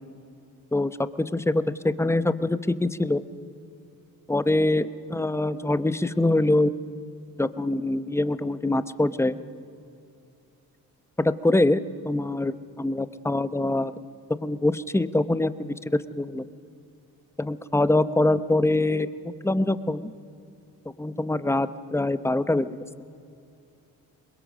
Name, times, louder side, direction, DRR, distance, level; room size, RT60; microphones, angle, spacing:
voice 1, 0.7-3.2 4.3-6.7 7.4-9.4 11.2-13.9 14.4-16.4 17.4-20.1 21.0-22.9, left 2 dB, 5° left, 14 dB, 0.8 m, -24 dB
23.0 x 21.5 x 6.4 m, 2.5 s
supercardioid pair, 70°, 39 cm